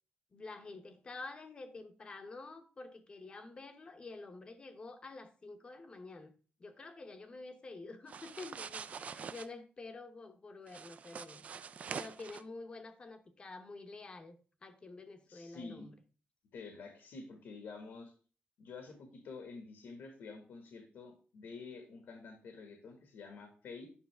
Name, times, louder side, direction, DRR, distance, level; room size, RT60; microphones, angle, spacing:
voice 1, 0.3-6.3 6.6-11.4 11.9-15.9, left 3 dB, 25° left, 0.8 m, -49 dB
sound 1, 8.1-9.5 10.7-12.4, right 6 dB, 40° right, 0.3 m, -45 dB
voice 2, 15.3-15.9 16.5-18.1 18.6-23.9, left 4 dB, 80° left, 1.7 m, -49 dB
9.6 x 5.8 x 3.4 m
wide cardioid pair, 180°, 4 cm